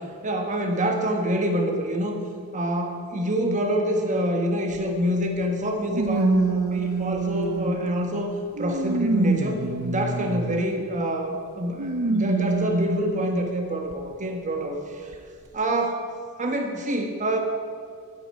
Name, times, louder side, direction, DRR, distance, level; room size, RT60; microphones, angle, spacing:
voice 1, 0.0-2.2 2.5-15.0 15.5-16.1 16.4-17.4, equal, 35° right, 3 dB, 1.7 m, -26 dB
sound 1, 4.7-4.8 5.9-8.0 8.6-10.6 11.8-13.2 13.9-14.0 15.1-15.2, right 3 dB, 80° right, 1.0 m, -25 dB
10.0 x 9.1 x 9.2 m, 2.1 s
head